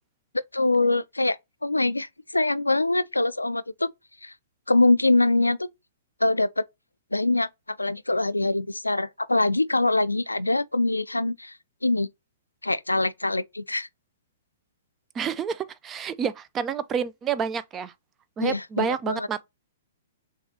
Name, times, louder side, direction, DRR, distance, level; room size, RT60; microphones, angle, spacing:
voice 1, 0.5-3.9 4.2-4.3 4.7-5.7 6.2-6.6 7.1-11.5 11.8-12.1 12.6-13.9 18.4-19.3, left 2 dB, 85° left, 0.3 m, -24 dB
voice 2, 15.1-17.9 18.4-19.4, right 7 dB, 20° right, 0.4 m, -29 dB
6.1 x 2.4 x 2.7 m
figure-of-eight pair, 115°, 0 cm